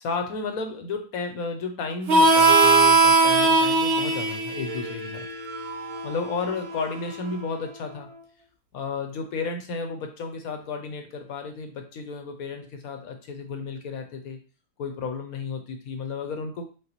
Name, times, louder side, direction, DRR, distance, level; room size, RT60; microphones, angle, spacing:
voice 1, 0.0-5.3 6.0-8.1 8.7-14.4 14.8-16.7, left 4 dB, 65° left, 5 dB, 1.0 m, -33 dB
Harmonica, 2.1-7.4, right 3 dB, 80° right, 0.5 m, -21 dB
6.3 x 2.2 x 3.0 m, 0.37 s
omnidirectional pair, 1.9 m